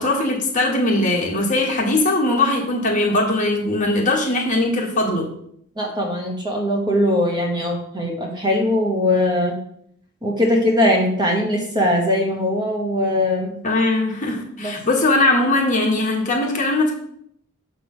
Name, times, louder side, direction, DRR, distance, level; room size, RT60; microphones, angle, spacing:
voice 1, 0.0-5.3 13.6-16.9, left 2 dB, 35° left, -1 dB, 1.5 m, -20 dB
voice 2, 5.8-9.6 10.2-13.5 14.6-14.7, left 1 dB, 20° right, 0 dB, 0.9 m, -20 dB
6.7 x 3.3 x 6.1 m, 0.70 s
head